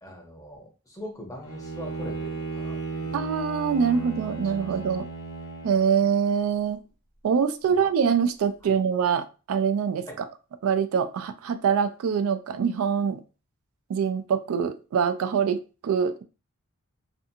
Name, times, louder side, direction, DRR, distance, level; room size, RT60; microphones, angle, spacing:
voice 1, 0.0-3.2 4.4-4.5 7.6-7.8 8.6-8.8 10.1-10.2, left 1 dB, 15° left, 1 dB, 0.7 m, -42 dB
Bowed string instrument, 1.4-6.3, right 3 dB, 80° left, 0.9 m, -35 dB
voice 2, 3.1-5.0 5.6-6.8 7.2-10.1 10.6-13.2 13.9-16.2, right 6 dB, 75° right, 10 dB, 0.3 m, -24 dB
2.6 x 2.4 x 2.6 m, 0.33 s
head